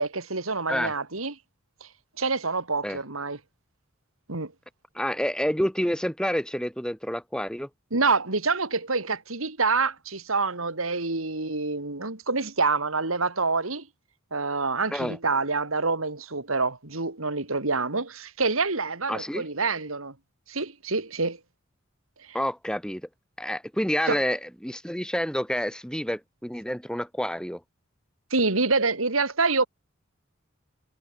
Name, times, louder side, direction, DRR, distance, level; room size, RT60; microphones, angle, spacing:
voice 1, 0.0-1.3 1.8-1.9 2.2-3.4 4.3-4.5 7.9-13.9 14.3-20.1 20.5-21.4 24.1-24.2 28.3-29.7, right 4 dB, 90° right, 3.2 m, -26 dB
voice 2, 4.9-7.7 14.9-15.2 19.1-19.4 22.3-23.0 23.4-27.6, equal, 5° left, 5.1 m, -28 dB
head